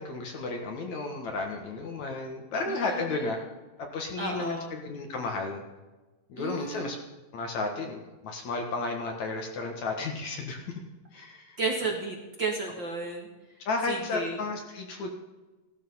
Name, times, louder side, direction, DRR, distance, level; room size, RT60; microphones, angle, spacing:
voice 1, 0.0-3.4 3.8-5.6 6.3-7.0 7.3-10.6 11.1-11.6 13.7-15.1, left 3 dB, 60° left, 2 dB, 2.7 m, -33 dB
voice 2, 2.7-3.3 4.2-4.7 6.4-6.8 11.6-13.3 13.9-14.4, right 3 dB, 35° right, -1 dB, 2.2 m, -33 dB
16.5 x 13.0 x 5.6 m, 1.1 s
omnidirectional pair, 4.2 m